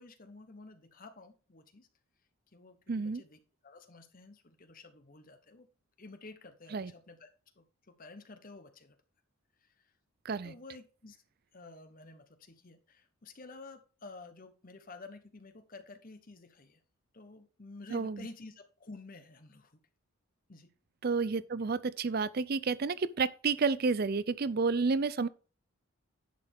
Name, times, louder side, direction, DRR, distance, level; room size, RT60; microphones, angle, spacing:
voice 1, 0.0-1.9 2.5-5.7 6.0-7.3 7.6-9.0 9.6-9.9 10.4-11.2 11.5-16.8 17.1-19.8 20.5-20.7, left 3 dB, 40° left, 1.0 m, -51 dB
voice 2, 2.9-3.2 6.7-6.9 10.2-10.5 17.9-18.2 21.0-25.3, right 4 dB, 45° right, 0.4 m, -30 dB
10.5 x 6.7 x 3.5 m
head